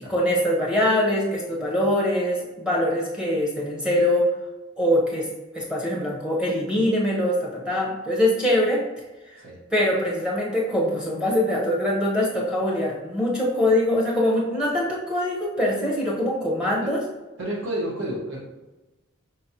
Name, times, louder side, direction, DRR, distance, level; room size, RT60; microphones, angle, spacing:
voice 1, 0.1-4.3 4.8-5.3 5.5-8.8 9.3-9.4 9.7-17.0, left 1 dB, 5° right, -4 dB, 0.8 m, -23 dB
voice 2, 17.4-18.4, right 1 dB, 65° right, -4 dB, 1.2 m, -30 dB
5.3 x 3.1 x 2.8 m, 1.1 s
head